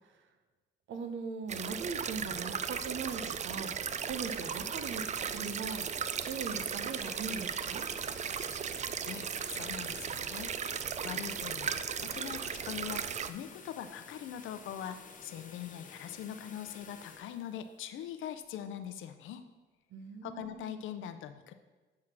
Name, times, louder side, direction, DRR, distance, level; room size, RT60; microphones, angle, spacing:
voice 1, 0.9-3.7 4.0-5.0 5.3-5.8 6.2-7.9 19.9-20.8, right 5 dB, 70° right, 7 dB, 0.8 m, -40 dB
sound 1, 1.5-13.3, right 7 dB, 35° right, 0.4 m, -36 dB
sound 2, 3.8-18.7, left 5 dB, 40° left, 0.8 m, -53 dB
voice 2, 9.0-10.5 11.0-19.4 20.2-21.5, left 10 dB, 80° left, 9 dB, 0.6 m, -42 dB
7.7 x 3.6 x 5.9 m, 1.2 s
cardioid pair, 90°, 20 cm